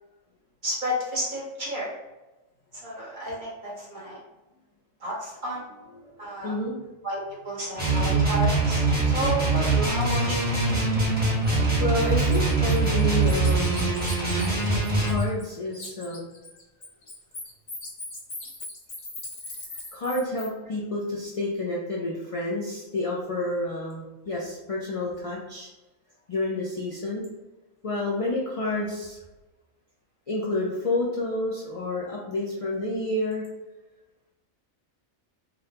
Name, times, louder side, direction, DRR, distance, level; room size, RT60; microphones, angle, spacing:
voice 1, 0.6-1.9 2.7-4.2 5.0-5.6 6.2-6.5 7.0-10.5, equal, 40° right, -6 dB, 1.1 m, -31 dB
voice 2, 6.4-6.8 11.8-13.9 15.0-16.3 19.9-25.7 26.3-27.2 27.8-29.2 30.3-33.4, left 2 dB, 65° left, -5 dB, 0.3 m, -29 dB
sound 1, 7.8-15.2, right 3 dB, 10° right, 1.0 m, -23 dB
Bird, 11.4-11.6 12.0-15.5 15.7-20.5, left 2 dB, 80° left, 1.5 m, -40 dB
3.8 x 2.1 x 2.8 m, 1.1 s
omnidirectional pair, 1.4 m